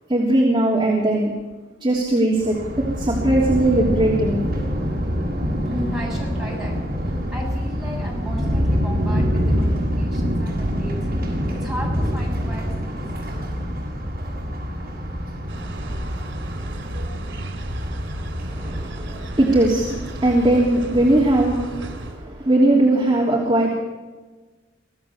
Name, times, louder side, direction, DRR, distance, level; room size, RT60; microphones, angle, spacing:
voice 1, 0.1-1.3 1.8-4.4 18.5-23.7, right 1 dB, 25° right, -3 dB, 3.3 m, -19 dB
Thunder, 2.4-19.8, equal, 50° right, 6.3 m, -25 dB
voice 2, 5.6-11.0 11.3-13.0, equal, 5° right, -3 dB, 7.1 m, -34 dB
sound 1, 15.5-22.2, right 1 dB, 85° right, 3.1 m, -33 dB
25.5 x 16.5 x 7.3 m, 1.3 s
head